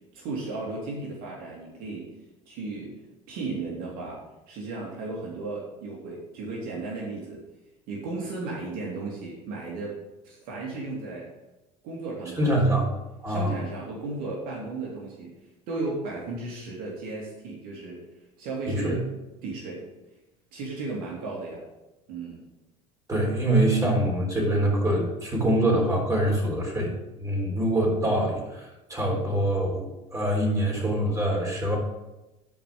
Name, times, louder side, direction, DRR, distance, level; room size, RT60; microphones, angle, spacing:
voice 1, 0.1-2.1 2.5-4.2 4.5-7.4 7.9-10.0 10.2-11.3 11.8-12.8 13.3-15.3 15.7-18.0 18.4-19.1 19.4-19.8 20.5-21.6 22.1-22.4, right 3 dB, 65° right, -3 dB, 2.7 m, -35 dB
voice 2, 12.4-12.9 13.2-13.5 18.7-18.9 23.1-26.9 27.2-31.8, right 1 dB, 20° right, -2 dB, 3.9 m, -24 dB
11.0 x 5.1 x 6.1 m, 1.0 s
supercardioid pair, 90°, 16 cm